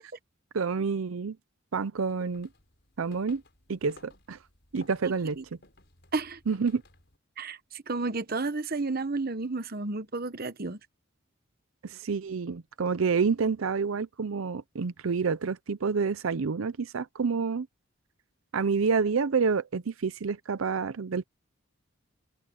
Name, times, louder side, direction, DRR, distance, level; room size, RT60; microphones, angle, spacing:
voice 1, 0.5-1.4 1.7-2.5 3.0-3.4 3.7-4.4 4.7-5.4 6.5-6.8 11.8-17.7 18.5-21.2, right 5 dB, 85° right, 0.6 m, -28 dB
sound 1, 2.0-7.2, left 2 dB, 55° left, 5.4 m, -57 dB
voice 2, 5.0-5.4 6.1-6.4 7.4-10.8, right 3 dB, 45° right, 1.1 m, -32 dB
open air
head